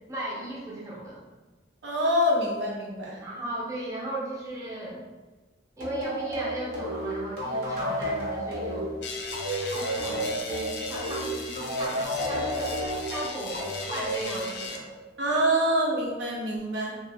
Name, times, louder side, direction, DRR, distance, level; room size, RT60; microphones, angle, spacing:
voice 1, 0.1-1.2 3.2-5.0 5.8-8.9 9.7-14.9, right 1 dB, 20° right, -5 dB, 0.6 m, -36 dB
voice 2, 1.8-3.2 15.2-17.0, equal, 85° right, -2 dB, 0.7 m, -25 dB
sound 1, 5.8-15.0, equal, 55° right, 0.9 m, -32 dB
sound 2, 9.0-14.8, left 4 dB, 75° left, 0.4 m, -38 dB
2.9 x 2.2 x 3.3 m, 1.3 s
head